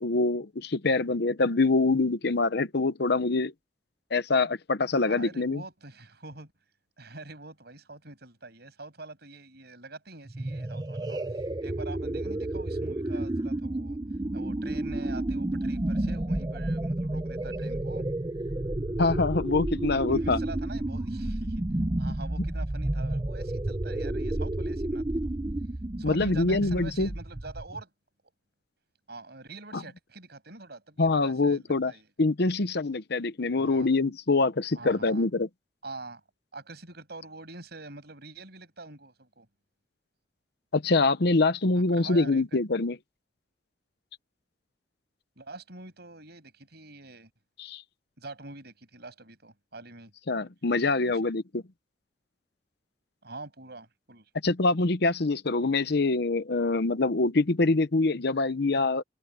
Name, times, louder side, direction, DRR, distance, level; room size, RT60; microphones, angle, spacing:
voice 1, 0.0-3.5 4.1-5.6 19.0-20.4 26.0-27.1 31.0-31.9 32.2-35.5 40.7-43.0 47.6-47.8 50.3-51.6 54.4-59.0, left 3 dB, 65° left, 0.9 m, -25 dB
voice 2, 5.0-6.5 7.0-14.0 14.3-18.0 20.1-21.6 22.0-25.2 26.0-27.9 29.1-32.1 33.5-33.9 34.7-35.3 35.8-36.2 36.5-39.5 41.7-42.6 45.4-47.3 48.2-50.1 50.6-51.3 53.2-54.3, right 2 dB, 60° right, 7.3 m, -45 dB
sound 1, 10.3-27.8, right 1 dB, 20° right, 0.6 m, -31 dB
head